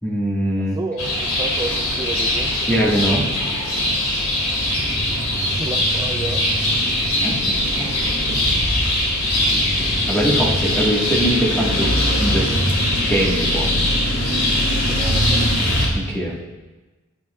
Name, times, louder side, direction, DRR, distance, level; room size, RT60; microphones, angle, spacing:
voice 1, 0.0-0.8 2.7-3.2 7.2-8.4 9.5-12.6 13.1-13.8 15.9-16.3, equal, 10° left, -4 dB, 1.5 m, -23 dB
voice 2, 0.7-2.5 5.6-6.5 14.9-15.4, right 2 dB, 20° right, 2 dB, 0.3 m, -30 dB
sound 1, 1.0-15.9, left 1 dB, 75° left, 2.4 m, -21 dB
9.8 x 9.1 x 2.3 m, 1.2 s
head